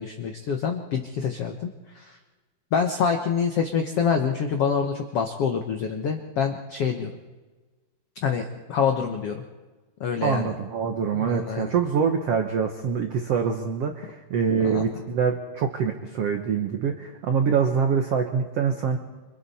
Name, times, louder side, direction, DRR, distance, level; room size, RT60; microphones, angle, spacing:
voice 1, 0.0-1.7 1.9-2.2 2.7-7.1 8.2-9.4 10.0-10.5 11.1-11.7 14.6-14.8, left 6 dB, 80° left, 4 dB, 1.3 m, -26 dB
voice 2, 10.2-19.0, right 6 dB, 70° right, 5 dB, 1.5 m, -25 dB
26.5 x 26.5 x 4.2 m, 1.3 s
omnidirectional pair, 4.4 m